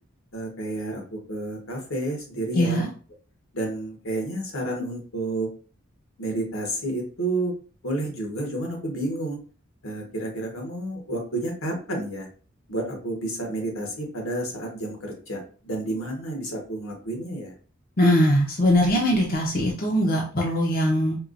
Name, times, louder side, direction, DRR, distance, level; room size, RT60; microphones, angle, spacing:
voice 1, 0.3-2.9 3.5-5.5 6.2-7.5 7.8-9.4 9.8-12.3 12.7-17.5, right 1 dB, 80° left, 1 dB, 1.3 m, -30 dB
voice 2, 2.5-2.9 18.0-21.2, equal, 45° left, -1 dB, 0.7 m, -21 dB
4.4 x 2.4 x 2.5 m, 0.40 s
head